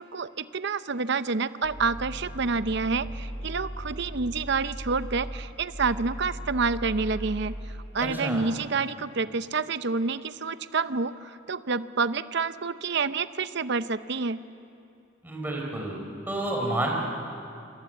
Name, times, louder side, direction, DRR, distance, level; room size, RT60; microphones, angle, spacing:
voice 1, 0.0-7.5 7.9-14.4, right 4 dB, 60° right, 13 dB, 0.7 m, -28 dB
sound 1, 1.6-7.7, equal, 65° left, 7.0 m, -38 dB
voice 2, 8.0-8.4 15.2-16.0 16.3-16.9, right 1 dB, 10° right, -1 dB, 4.8 m, -29 dB
27.0 x 26.5 x 7.9 m, 2.6 s
head